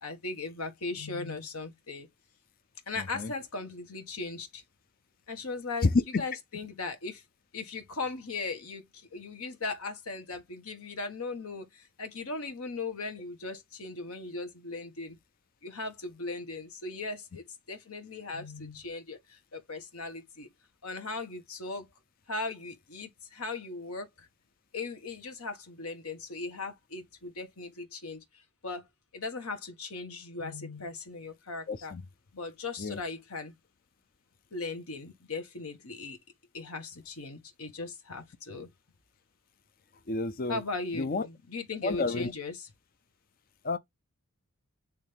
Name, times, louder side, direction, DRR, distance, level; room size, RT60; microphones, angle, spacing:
voice 1, 0.0-2.1 2.9-4.6 5.3-5.9 6.2-7.2 7.5-15.2 15.6-20.5 20.8-21.9 22.3-24.3 24.7-28.9 29.1-31.9 32.3-33.5 34.5-36.2 36.5-38.7 40.5-42.7, left 3 dB, 75° left, 1.5 m, -38 dB
voice 2, 3.0-3.3 5.8-6.2 31.7-32.0 32.8-33.0 40.1-40.6 40.9-41.3 41.8-42.3 43.6-43.8, left 3 dB, 40° left, 0.5 m, -29 dB
8.6 x 3.4 x 3.5 m
head